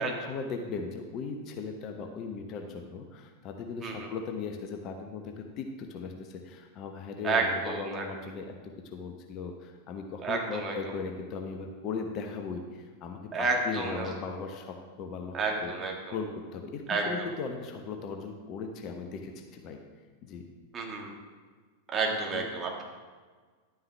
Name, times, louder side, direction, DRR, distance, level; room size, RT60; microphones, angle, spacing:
voice 1, 0.0-8.5 8.9-15.7 16.1-19.8 20.2-20.4 22.3-22.5, left 5 dB, 35° left, 4 dB, 0.9 m, -38 dB
voice 2, 7.2-8.1 10.2-10.8 13.3-14.1 15.3-16.1 16.9-17.3 20.7-21.1 21.9-22.8, right 3 dB, 25° right, 0 dB, 1.8 m, -30 dB
11.5 x 9.2 x 3.4 m, 1.5 s
figure-of-eight pair, 90°, 0 cm